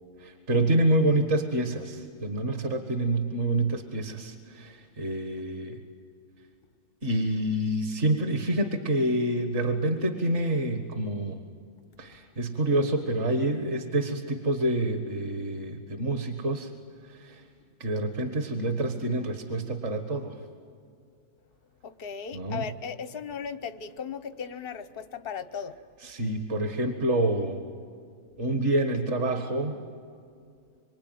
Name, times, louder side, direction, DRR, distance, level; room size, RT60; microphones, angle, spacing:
voice 1, 0.2-5.8 7.0-11.4 12.0-16.7 17.0-17.4 17.8-20.4 22.3-22.7 26.0-27.7 28.4-29.8, right 1 dB, 40° right, 6 dB, 1.8 m, -27 dB
voice 2, 21.8-25.8, left 6 dB, 50° left, 11 dB, 0.7 m, -37 dB
25.5 x 25.0 x 9.4 m, 2.3 s
omnidirectional pair, 2.2 m